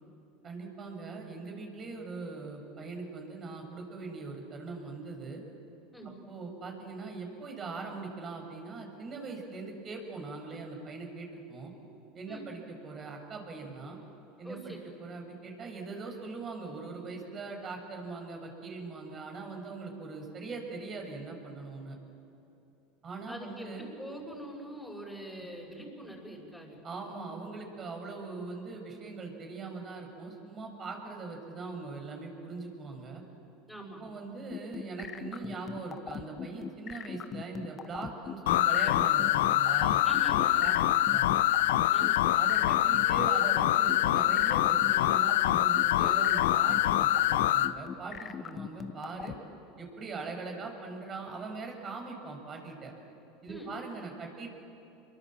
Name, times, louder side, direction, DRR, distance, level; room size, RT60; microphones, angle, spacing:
voice 1, 0.4-5.4 6.3-11.7 12.1-14.0 14.4-21.9 23.0-23.8 26.8-33.2 34.0-40.0 40.3-40.7 41.1-41.2 42.3-49.3 49.8-52.9 53.4-54.5, right 4 dB, 35° right, 3 dB, 6.2 m, -41 dB
voice 2, 14.4-14.8 23.3-26.8 33.7-34.1 40.0-41.0 41.9-42.2 53.5-53.7, equal, ahead, -4 dB, 6.2 m, -43 dB
sound 1, 34.5-49.4, left 7 dB, 35° left, 1.1 m, -39 dB
sound 2, 38.5-47.7, left 14 dB, 80° left, 0.6 m, -25 dB
27.5 x 22.5 x 7.5 m, 2.9 s
hypercardioid pair, 95°, 0 cm